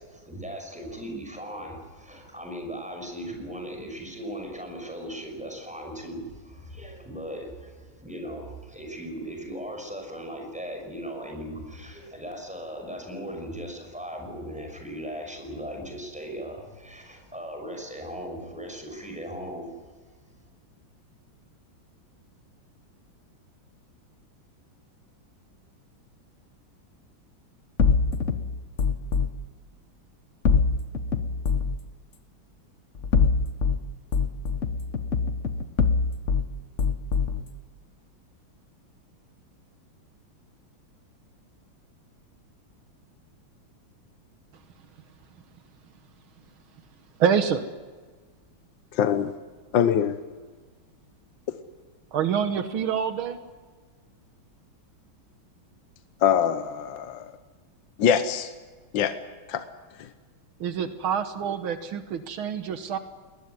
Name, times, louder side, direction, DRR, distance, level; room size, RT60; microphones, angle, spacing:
voice 1, 0.0-19.7, equal, 5° right, 3 dB, 5.8 m, -38 dB
sound 1, 27.8-29.3 30.4-31.8 32.9-33.8 34.1-36.5 36.8-37.4, left 5 dB, 45° left, 1.2 m, -23 dB
voice 2, 47.2-47.6 52.1-53.4 60.6-63.0, right 7 dB, 80° right, 9 dB, 2.0 m, -26 dB
voice 3, 48.9-49.3 49.7-50.2 56.2-57.3 58.0-58.5 58.9-59.1 59.5-59.6, left 8 dB, 65° left, 9 dB, 1.6 m, -23 dB
20.5 x 20.0 x 9.7 m, 1.4 s
omnidirectional pair, 2.2 m